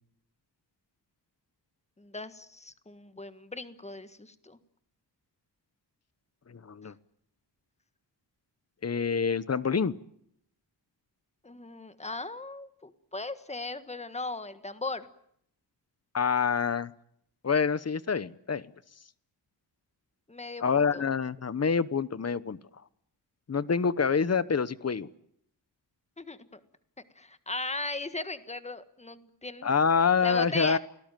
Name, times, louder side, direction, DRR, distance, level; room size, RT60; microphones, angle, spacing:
voice 1, 2.0-4.6 6.8-6.9 11.4-15.1 20.3-21.0 26.2-26.6 27.1-29.7 30.2-30.8, left 2 dB, 15° left, 11 dB, 1.5 m, -38 dB
voice 2, 6.5-6.9 8.8-9.9 16.1-16.9 17.4-18.6 20.6-22.6 23.5-25.1 29.6-30.8, left 6 dB, 35° left, 17 dB, 1.0 m, -26 dB
29.5 x 19.0 x 9.1 m, 0.71 s
wide cardioid pair, 165°, 43 cm